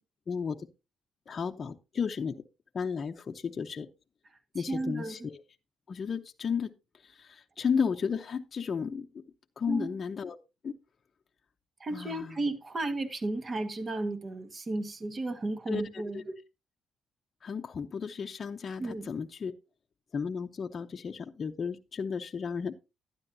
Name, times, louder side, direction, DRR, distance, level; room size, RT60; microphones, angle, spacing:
voice 1, 0.3-0.7 1.3-2.4 2.7-3.9 4.5-5.4 5.9-9.2 9.6-10.4 10.6-10.8 11.9-12.4 15.7-16.2 17.4-19.5 20.1-22.7, left 6 dB, 45° left, 0.7 m, -34 dB
voice 2, 4.7-5.3 9.7-10.0 11.8-16.3 18.8-19.1, right 2 dB, 35° right, 1.6 m, -34 dB
12.0 x 9.7 x 2.7 m
cardioid pair, 90°, 0 cm